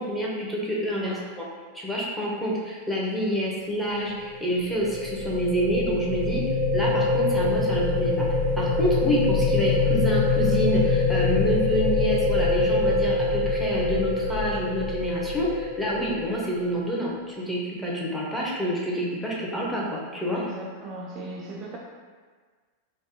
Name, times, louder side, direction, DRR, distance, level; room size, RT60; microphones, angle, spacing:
voice 1, 0.0-1.4 1.7-20.4, equal, 5° left, -6 dB, 0.7 m, -28 dB
sound 1, 4.3-16.5, left 3 dB, 60° left, 0.9 m, -24 dB
voice 2, 20.3-21.8, right 1 dB, 30° right, -3 dB, 0.3 m, -37 dB
3.2 x 2.1 x 2.8 m, 1.5 s
figure-of-eight pair, 90°, 0 cm